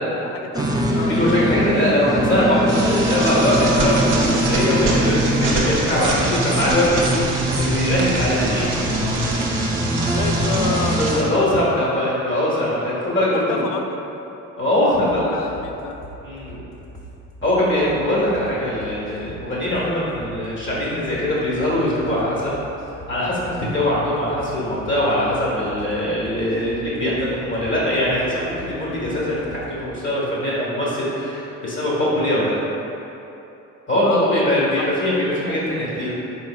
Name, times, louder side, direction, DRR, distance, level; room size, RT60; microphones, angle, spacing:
voice 1, 0.0-1.2 10.1-12.1 13.2-14.0 14.9-16.0 34.0-34.9, left 5 dB, 65° left, 4 dB, 0.5 m, -30 dB
sound 1, 0.5-11.2, right 1 dB, 10° right, 0.4 m, -22 dB
voice 2, 1.0-8.7 10.9-13.7 14.6-15.4 16.2-16.6 17.4-22.6 23.1-32.5 33.9-36.1, left 1 dB, 35° left, -7 dB, 1.5 m, -22 dB
sound 2, 2.7-11.2, right 3 dB, 65° right, 0.8 m, -27 dB
sound 3, 15.1-15.7 16.0-16.2 16.5-16.6 16.9-17.1 17.4-17.6 17.9-18.0 18.3-18.5 18.8-19.4 19.7-19.9 20.2-20.4 20.7-20.8 21.1-21.3 21.6-21.8 22.1-22.2 22.5-23.2 23.5-23.6 23.9-24.1 24.4-24.6 24.8-25.0 25.3-25.5 25.8-25.9 26.2-26.9 27.2-27.3 27.6-27.8 28.1-28.3 28.6-28.7 29.0-29.2 29.5-29.7, right 1 dB, 10° left, 0.8 m, -40 dB
3.9 x 3.8 x 2.4 m, 3.0 s
supercardioid pair, 65°, 35 cm